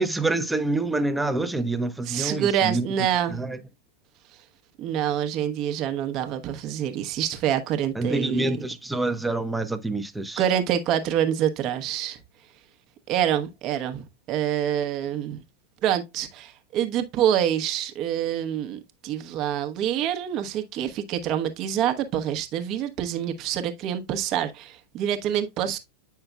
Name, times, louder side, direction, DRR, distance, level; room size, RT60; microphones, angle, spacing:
voice 1, 0.0-2.9 3.3-3.6 7.9-10.4, right 2 dB, 5° right, 0.8 m, -26 dB
voice 2, 2.1-3.4 4.8-8.6 10.4-12.2 13.1-15.4 15.8-25.8, right 10 dB, 35° right, 1.0 m, -26 dB
8.8 x 5.7 x 2.3 m
figure-of-eight pair, 90°, 0 cm